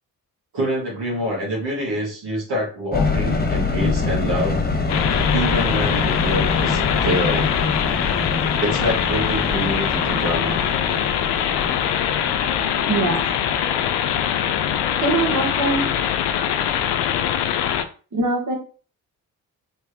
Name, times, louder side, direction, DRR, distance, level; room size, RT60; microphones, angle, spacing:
voice 1, 0.5-4.6 5.3-7.5 8.6-10.6, equal, 70° right, -4 dB, 1.7 m, -26 dB
sound 1, 2.9-13.1, left 4 dB, 20° left, 0.9 m, -25 dB
sound 2, 4.9-17.8, left 9 dB, 70° left, 0.5 m, -23 dB
voice 2, 12.9-13.2 15.0-15.9 18.1-18.5, right 3 dB, 45° right, 0 dB, 1.5 m, -22 dB
3.3 x 3.3 x 2.2 m, 0.38 s
supercardioid pair, 45°, 43 cm